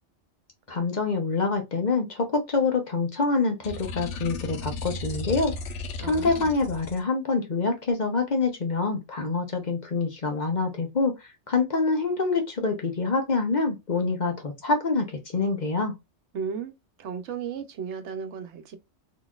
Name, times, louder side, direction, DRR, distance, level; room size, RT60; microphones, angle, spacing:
voice 1, 0.7-5.5 6.0-11.1 11.5-15.9, left 3 dB, 45° left, 0.9 m, -26 dB
sound 1, 3.6-7.0, left 3 dB, 85° left, 1.0 m, -35 dB
voice 2, 6.0-6.5 16.3-16.7 17.0-18.8, right 6 dB, 75° right, 1.0 m, -34 dB
4.0 x 3.0 x 2.3 m
omnidirectional pair, 1.2 m